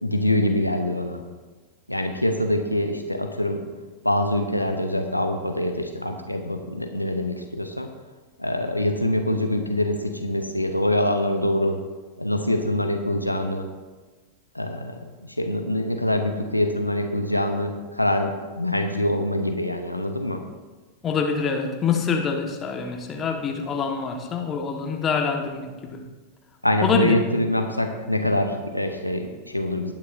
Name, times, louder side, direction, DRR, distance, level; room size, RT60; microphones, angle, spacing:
voice 1, 0.0-1.2 1.9-3.6 4.0-7.9 8.4-11.8 12.2-13.7 14.5-20.4 26.6-29.9, left 1 dB, 85° left, 6 dB, 0.8 m, -24 dB
voice 2, 21.0-26.0 26.8-27.2, left 5 dB, 25° left, 3 dB, 1.4 m, -25 dB
18.5 x 9.6 x 2.6 m, 1.3 s
figure-of-eight pair, 90°, 0 cm